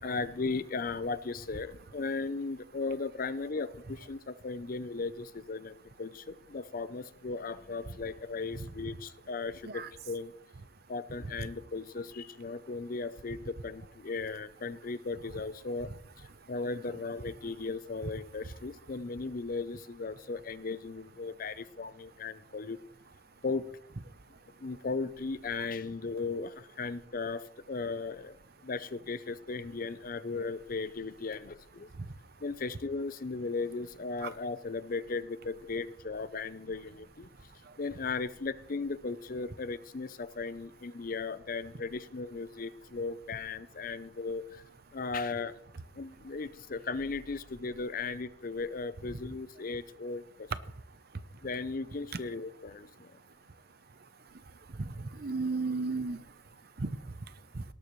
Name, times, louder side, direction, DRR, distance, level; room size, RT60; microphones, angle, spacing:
voice 1, 0.0-5.7 6.0-10.3 10.9-15.9 16.5-22.8 23.4-23.7 24.6-28.4 28.6-31.9 32.4-37.3 37.8-44.6 44.9-45.6 46.0-50.5 51.4-53.1, left 4 dB, 50° left, 14 dB, 0.6 m, -36 dB
voice 2, 54.8-56.2 56.8-57.0 57.5-57.6, right 3 dB, 55° right, 13 dB, 0.7 m, -34 dB
18.5 x 12.0 x 3.2 m, 0.72 s
head